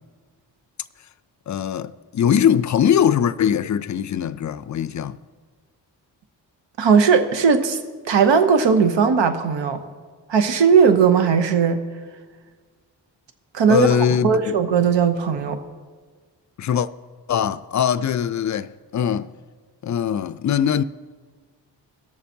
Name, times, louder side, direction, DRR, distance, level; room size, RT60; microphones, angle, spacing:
voice 1, 1.5-5.2 13.7-14.5 16.6-16.9 17.3-19.3 19.8-20.8, left 8 dB, 40° left, 0.4 m, -21 dB
voice 2, 6.8-7.8 8.1-9.8 10.3-11.8 13.5-13.9 14.2-15.6, right 6 dB, 75° right, 0.9 m, -17 dB
18.0 x 7.0 x 2.7 m
cardioid pair, 55°, 45 cm